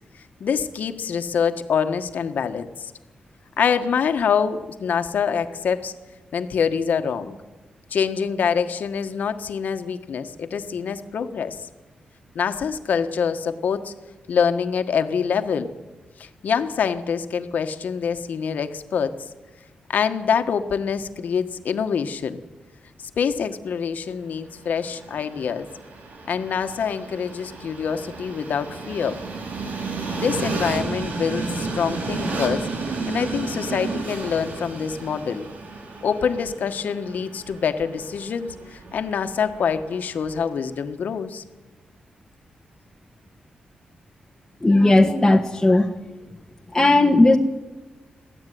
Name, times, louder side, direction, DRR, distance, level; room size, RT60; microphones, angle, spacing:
voice 1, 0.1-2.9 3.6-5.9 6.3-7.4 7.9-11.6 12.3-13.9 14.3-15.7 16.2-19.2 19.9-22.4 23.2-25.7 26.3-29.2 30.1-32.7 33.1-35.5 36.0-41.4, left 6 dB, 75° left, 8 dB, 1.5 m, -25 dB
Train, 24.6-40.6, right 3 dB, 75° right, 4.1 m, -32 dB
voice 2, 44.6-45.9 46.7-47.4, left 2 dB, 15° left, 1 dB, 1.5 m, -16 dB
22.5 x 15.5 x 9.5 m, 1.2 s
cardioid pair, 85°, 3 cm